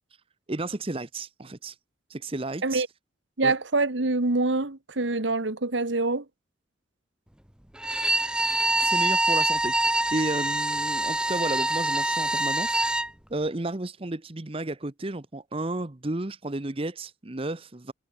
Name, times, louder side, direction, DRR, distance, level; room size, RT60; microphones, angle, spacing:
voice 1, 0.5-1.8 2.1-2.8 3.4-3.5 8.8-13.0 13.3-17.9, right 2 dB, 30° right, 0.9 m, -32 dB
voice 2, 3.4-6.2, right 3 dB, 70° right, 1.5 m, -25 dB
Bowed string instrument, 7.8-13.1, right 1 dB, 5° right, 0.5 m, -25 dB
head